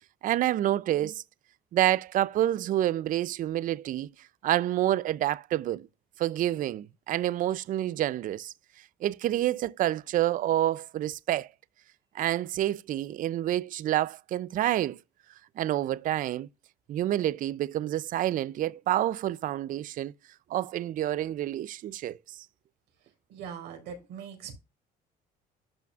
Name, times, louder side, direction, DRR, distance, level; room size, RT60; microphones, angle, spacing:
voice 1, 0.2-1.2 1.7-4.1 4.4-5.9 6.2-8.5 9.0-11.5 12.1-15.0 15.6-16.5 16.9-20.1 20.5-22.4, right 13 dB, 55° right, 0.4 m, -28 dB
voice 2, 23.3-24.6, right 7 dB, 85° right, 4.5 m, -41 dB
12.0 x 5.8 x 2.4 m
cardioid pair, 110°, 17 cm